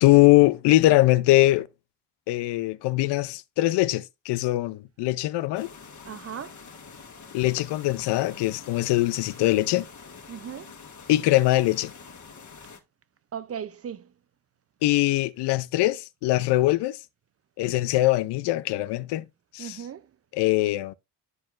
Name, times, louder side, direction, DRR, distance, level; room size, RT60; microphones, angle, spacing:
voice 1, 0.0-1.7 2.3-5.7 7.3-9.9 11.1-11.9 14.8-17.0 17.6-19.3 19.5-19.8 20.3-20.9, left 17 dB, 85° left, 0.6 m, -22 dB
sound 1, 5.5-12.8, left 5 dB, 45° left, 1.7 m, -46 dB
voice 2, 6.0-6.6 10.3-10.7 13.3-14.1 19.6-20.1, right 8 dB, 35° right, 0.5 m, -37 dB
12.5 x 4.4 x 2.4 m
cardioid pair, 80°, 40 cm